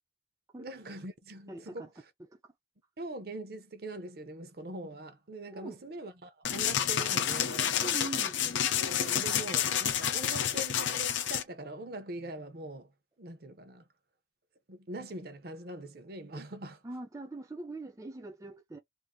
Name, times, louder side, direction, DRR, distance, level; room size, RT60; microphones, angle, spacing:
voice 1, 0.6-1.9 3.0-7.8 8.8-12.9 13.2-13.8 14.7-16.8, right 1 dB, 55° right, 0.7 m, -42 dB
voice 2, 1.5-1.9 2.3-2.5 5.5-5.8 7.8-8.4 16.8-18.8, right 2 dB, 20° right, 0.5 m, -42 dB
sound 1, 6.4-11.4, left 9 dB, 85° left, 0.6 m, -29 dB
2.6 x 2.5 x 3.6 m
head